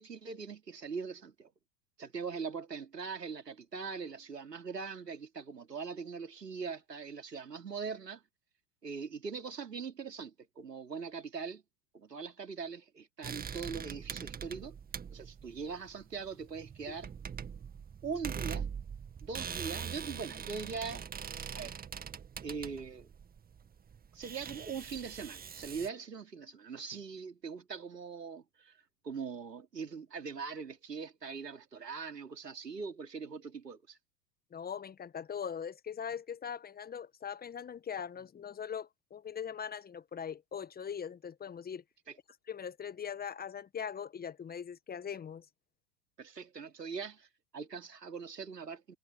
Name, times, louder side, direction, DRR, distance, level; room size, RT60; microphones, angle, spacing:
voice 1, 0.0-1.5 2.0-8.2 8.8-11.6 11.9-14.8 15.1-17.1 18.0-18.7 19.2-21.1 21.5-21.7 22.4-23.1 24.1-28.8 29.0-34.0 42.1-42.2 46.2-47.3 47.5-49.0, right 5 dB, 85° right, 3.3 m, -41 dB
sound 1, 13.2-25.9, right 7 dB, 20° right, 2.1 m, -43 dB
voice 2, 34.5-41.8 42.5-45.4, left 7 dB, 20° left, 1.5 m, -41 dB
figure-of-eight pair, 95°, 48 cm